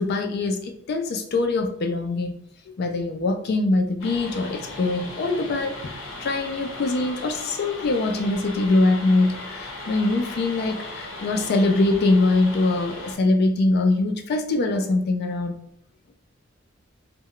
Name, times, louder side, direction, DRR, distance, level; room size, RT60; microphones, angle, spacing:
voice 1, 0.0-2.3 2.8-5.9 6.2-15.6, left 2 dB, 55° left, 4 dB, 0.3 m, -23 dB
sound 1, 4.0-13.2, left 2 dB, 75° left, 0.8 m, -37 dB
2.1 x 2.1 x 3.6 m, 0.70 s
head